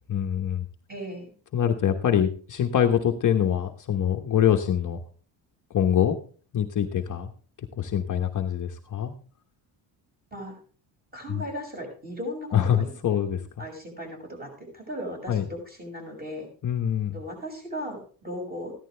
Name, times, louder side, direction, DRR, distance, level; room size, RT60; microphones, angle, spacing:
voice 1, 0.1-0.7 1.5-5.0 5.7-6.2 6.5-7.3 7.8-9.1 11.3-11.4 12.5-13.4 15.3-15.4 16.6-17.2, left 9 dB, 40° left, 4 dB, 1.1 m, -24 dB
voice 2, 0.9-1.3 10.3-10.6 11.1-12.9 13.6-16.5 17.1-18.7, equal, 20° right, 2 dB, 6.3 m, -37 dB
15.0 x 11.5 x 3.3 m, 0.40 s
cardioid pair, 135°, 47 cm